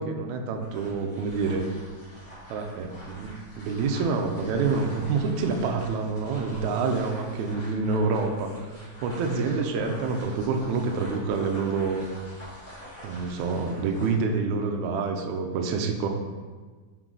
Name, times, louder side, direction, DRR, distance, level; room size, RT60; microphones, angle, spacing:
voice 1, 0.0-1.7 2.5-8.7 9.0-12.1 13.0-16.1, right 4 dB, 80° right, 3 dB, 1.9 m, -27 dB
sound 1, 0.5-14.2, equal, 30° left, 1.9 m, -45 dB
6.0 x 4.2 x 3.8 m, 1.4 s
omnidirectional pair, 3.5 m